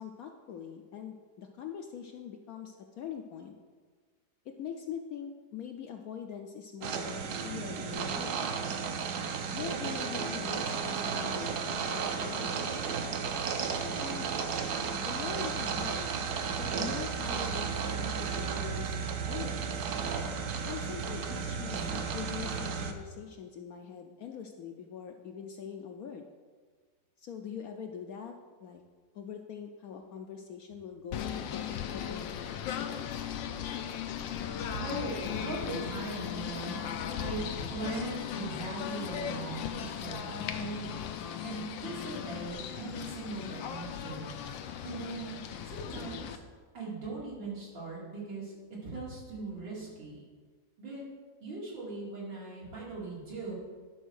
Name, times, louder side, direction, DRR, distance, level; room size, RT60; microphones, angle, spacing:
voice 1, 0.0-3.5 4.5-8.6 9.5-12.9 14.0-14.3 15.0-16.1 16.5-19.8 20.7-26.3 27.2-28.3 28.6-28.8 29.1-32.3 32.7-33.2, left 7 dB, 70° left, 4 dB, 0.9 m, -43 dB
sound 1, 6.8-22.9, right 6 dB, 65° right, 1.2 m, -33 dB
Singing / Bird, 31.1-46.4, left 9 dB, 85° left, 1.4 m, -37 dB
voice 2, 34.6-41.0 41.4-44.3 44.8-45.4 45.6-46.4 46.7-50.2 50.8-51.0 51.4-53.6, right 3 dB, 85° right, -5 dB, 3.1 m, -40 dB
11.0 x 4.2 x 6.3 m, 1.5 s
omnidirectional pair, 2.0 m